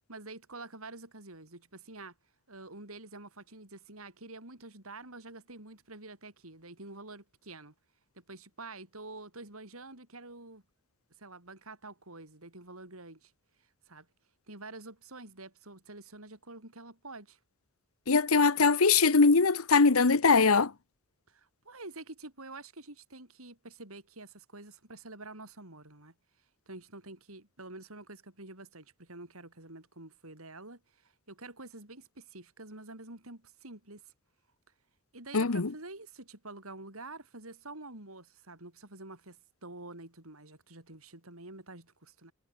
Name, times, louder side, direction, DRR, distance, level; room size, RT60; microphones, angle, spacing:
voice 1, 0.1-2.1 2.5-7.7 8.1-10.6 11.2-13.3 13.9-14.1 14.5-17.4 21.3-26.1 26.7-34.0 35.1-42.3, right 2 dB, 75° right, 6.8 m, -48 dB
voice 2, 18.1-20.7 35.3-35.7, left 4 dB, 75° left, 1.0 m, -22 dB
head